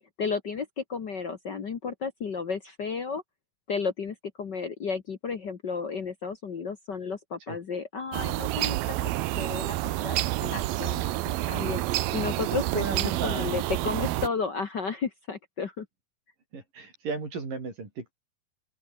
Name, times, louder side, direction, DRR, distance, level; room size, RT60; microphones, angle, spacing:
voice 1, 0.2-3.2 3.7-11.1 11.5-15.9, left 5 dB, 65° left, 1.0 m, -33 dB
sound 1, 8.1-14.3, right 16 dB, 80° right, 2.8 m, -29 dB
voice 2, 12.7-13.6 16.5-18.1, right 4 dB, 60° right, 7.9 m, -35 dB
open air
omnidirectional pair, 4.3 m